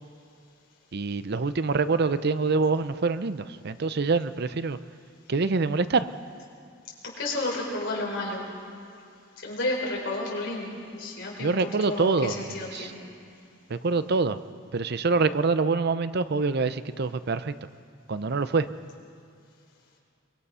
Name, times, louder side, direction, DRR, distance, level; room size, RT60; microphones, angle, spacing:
voice 1, 0.9-4.8 5.3-6.1 11.4-12.9 13.7-14.4 14.7-17.5 18.1-18.7, right 4 dB, 55° right, 13 dB, 0.6 m, -25 dB
voice 2, 7.2-8.4 9.4-13.0, left 2 dB, 60° left, -2 dB, 4.8 m, -31 dB
23.5 x 21.0 x 5.6 m, 2.4 s
head